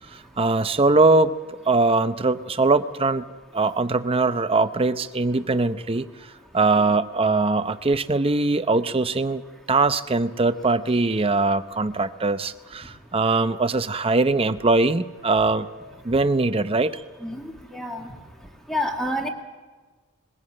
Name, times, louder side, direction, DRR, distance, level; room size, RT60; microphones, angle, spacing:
voice 1, 0.1-1.3 1.7-3.2 3.5-6.1 6.5-9.4 9.7-15.7 16.0-17.0, right 3 dB, 25° right, 11 dB, 0.6 m, -21 dB
voice 2, 17.2-18.1 18.7-19.3, left 1 dB, ahead, 2 dB, 2.1 m, -29 dB
20.5 x 16.0 x 8.7 m, 1.4 s
head